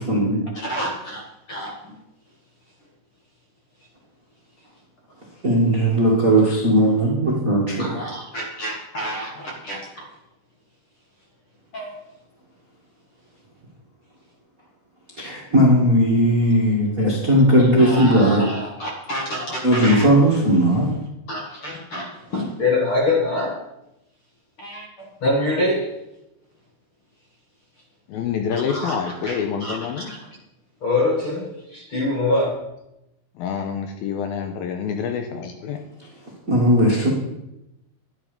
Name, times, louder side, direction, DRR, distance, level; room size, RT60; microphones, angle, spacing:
voice 1, 0.0-0.4 5.4-7.9 15.2-18.4 19.6-20.9 36.5-37.1, right 1 dB, 30° right, -3 dB, 1.6 m, -17 dB
voice 2, 0.5-1.7 7.8-10.0 11.7-12.0 17.8-20.1 21.3-23.6 24.6-26.0 28.5-30.2 30.8-32.5, left 2 dB, 45° left, -1 dB, 1.8 m, -26 dB
voice 3, 28.1-30.2 33.4-35.8, left 7 dB, 75° left, 5 dB, 2.4 m, -27 dB
11.5 x 10.5 x 5.2 m, 0.88 s
omnidirectional pair, 4.9 m